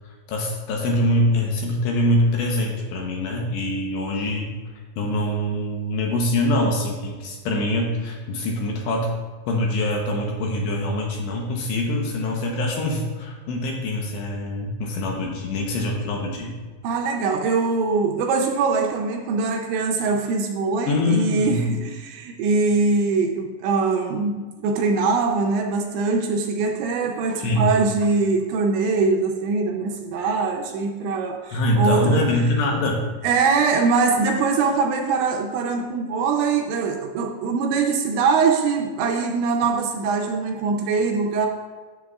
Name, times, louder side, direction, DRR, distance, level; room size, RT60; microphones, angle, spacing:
voice 1, 0.3-4.5 5.0-9.1 9.5-16.5 20.9-21.6 27.4-27.7 31.5-33.0, left 1 dB, 75° left, 0 dB, 2.8 m, -24 dB
voice 2, 16.8-32.3 33.2-41.5, right 4 dB, 80° right, 2 dB, 2.8 m, -22 dB
11.0 x 7.8 x 2.4 m, 1.4 s
omnidirectional pair, 5.5 m